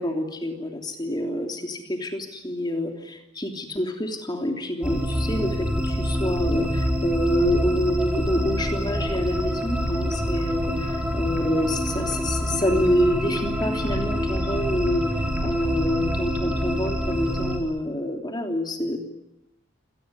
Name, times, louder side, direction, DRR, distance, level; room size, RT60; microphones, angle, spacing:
voice 1, 0.0-15.1 15.4-19.0, left 1 dB, 20° left, 4 dB, 3.2 m, -27 dB
sound 1, 4.8-17.6, equal, 5° right, 4.3 m, -26 dB
27.0 x 19.0 x 10.0 m, 0.91 s
head